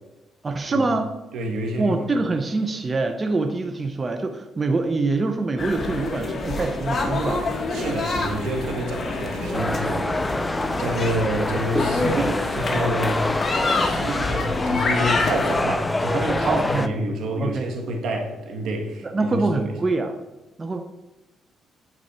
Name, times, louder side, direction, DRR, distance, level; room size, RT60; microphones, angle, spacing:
voice 1, 0.4-1.1 1.8-7.4 16.4-16.9 17.4-17.7 19.0-20.2 20.6-20.8, right 3 dB, 30° right, 5 dB, 0.7 m, -24 dB
voice 2, 1.3-2.1 7.7-10.2 10.8-19.8, right 1 dB, 75° right, 2 dB, 1.6 m, -28 dB
sound 1, 5.6-15.6, left 3 dB, 40° left, 1.4 m, -27 dB
sound 2, 9.5-16.9, left 2 dB, 15° left, 0.5 m, -26 dB
9.4 x 4.5 x 4.3 m, 1.0 s
cardioid pair, 90°, 0 cm